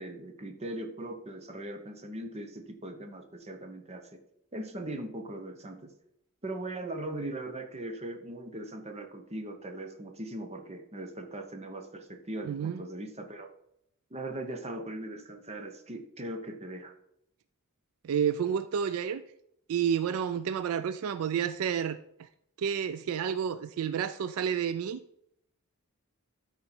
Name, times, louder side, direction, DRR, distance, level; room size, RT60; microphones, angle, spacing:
voice 1, 0.0-4.2 4.5-5.9 6.4-13.5 14.1-16.9, right 1 dB, 30° right, 5 dB, 0.8 m, -39 dB
voice 2, 12.4-12.8 18.0-19.2 19.7-22.3 22.6-25.0, right 8 dB, 70° right, 14 dB, 0.3 m, -30 dB
13.0 x 4.3 x 4.4 m, 0.76 s
head